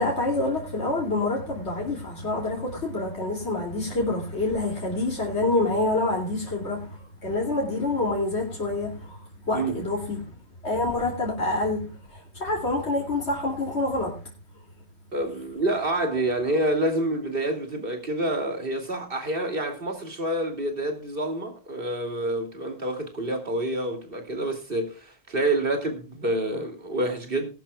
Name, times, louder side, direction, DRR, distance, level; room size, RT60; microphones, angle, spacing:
voice 1, 0.0-10.4 10.6-14.3, left 2 dB, 80° left, 3.1 m, -27 dB
voice 2, 15.1-27.5, right 1 dB, 55° right, 2.9 m, -28 dB
19.5 x 11.5 x 2.3 m
omnidirectional pair, 1.1 m